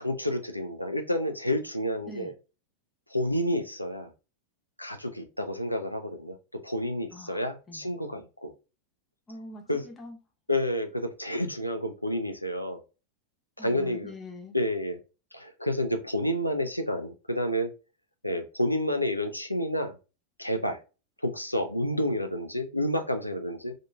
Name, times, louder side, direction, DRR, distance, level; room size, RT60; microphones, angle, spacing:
voice 1, 0.0-2.3 3.1-4.1 4.8-8.5 9.7-9.9 10.5-12.8 13.6-14.1 14.5-15.0 15.3-17.7 18.2-19.9 20.4-20.8 21.2-23.7, left 1 dB, 90° left, 0.5 m, -29 dB
voice 2, 9.3-10.2 13.6-14.6, left 2 dB, 15° left, 0.7 m, -44 dB
2.8 x 2.5 x 2.2 m
figure-of-eight pair, 90°, 0 cm